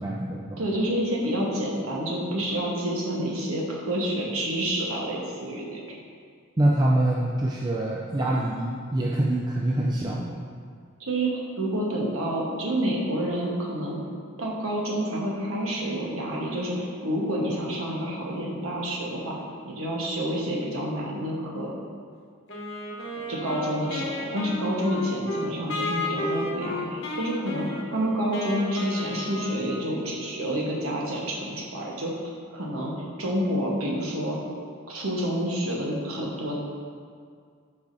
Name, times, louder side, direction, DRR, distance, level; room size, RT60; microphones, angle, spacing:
voice 1, 0.0-0.6 6.6-10.4, right 1 dB, 20° right, -3 dB, 0.3 m, -25 dB
voice 2, 0.6-6.0 11.0-14.0 14.4-19.3 19.6-21.7 23.3-32.2 32.5-32.9 33.2-34.4 34.9-36.5, right 1 dB, 75° right, -3 dB, 1.2 m, -28 dB
Wind instrument woodwind instrument, 22.5-30.2, left 2 dB, 55° left, 1.0 m, -33 dB
8.4 x 4.8 x 2.6 m, 2.1 s
head